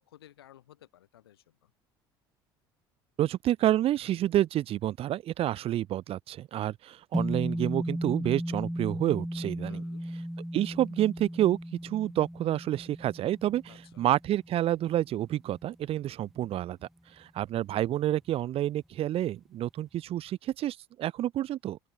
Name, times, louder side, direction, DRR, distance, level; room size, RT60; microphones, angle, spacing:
voice 1, 0.0-1.7 9.7-10.0 13.7-14.1, left 12 dB, 85° left, 3.6 m, -56 dB
voice 2, 3.2-9.8 10.5-11.6 11.8-16.8 17.2-21.8, right 13 dB, 50° right, 0.9 m, -29 dB
sound 1, 7.1-15.6, equal, ahead, 2.5 m, -36 dB
open air
hypercardioid pair, 70°, 12 cm